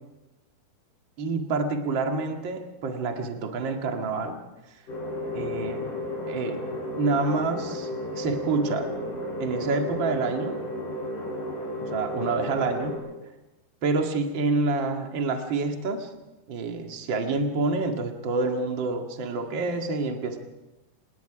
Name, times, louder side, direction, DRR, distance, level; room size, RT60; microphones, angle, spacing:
voice 1, 1.2-4.4 4.7-4.8 5.3-5.9 6.2-6.7 6.9-8.9 9.4-10.6 11.8-13.0 13.8-16.1 16.5-20.4, right 3 dB, 45° right, 3 dB, 1.7 m, -28 dB
sound 1, 4.9-13.0, left 1 dB, 50° left, 7.1 m, -33 dB
27.0 x 20.0 x 5.0 m, 1.0 s
omnidirectional pair, 4.8 m